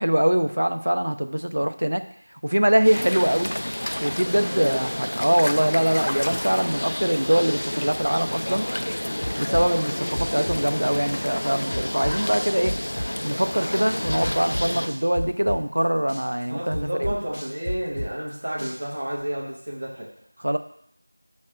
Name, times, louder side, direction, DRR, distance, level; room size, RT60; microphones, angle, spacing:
voice 1, 0.0-2.0 2.4-3.5 4.0-8.7 9.4-12.8 13.2-17.1 20.4-20.6, equal, 50° right, 9 dB, 0.4 m, -23 dB
sound 1, 2.8-14.9, left 1 dB, 40° left, 0.4 m, -30 dB
voice 2, 4.5-4.8 16.5-20.1, right 1 dB, 20° right, -4 dB, 0.7 m, -31 dB
sound 2, 9.2-10.8 11.1-13.3 13.6-15.8 16.1-18.3 18.6-19.2, equal, 15° left, 0.9 m, -32 dB
5.0 x 4.2 x 4.7 m, 0.68 s
figure-of-eight pair, 175°, 0 cm